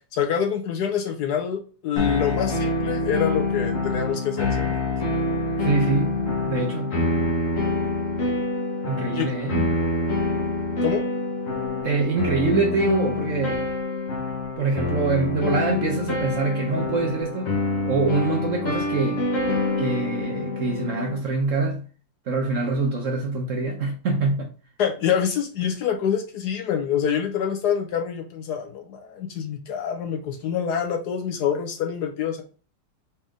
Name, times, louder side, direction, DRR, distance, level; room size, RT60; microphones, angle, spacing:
voice 1, 0.1-4.9 9.1-9.3 10.8-11.0 24.8-32.4, left 8 dB, 65° left, 1.1 m, -26 dB
sound 1, 2.0-21.2, left 2 dB, 45° left, 1.4 m, -26 dB
voice 2, 5.6-7.0 8.8-9.8 11.8-13.8 14.6-17.5 17.9-19.3 19.8-21.8 22.3-24.5, right 3 dB, 55° right, 0.9 m, -25 dB
4.2 x 3.4 x 3.6 m
omnidirectional pair, 2.1 m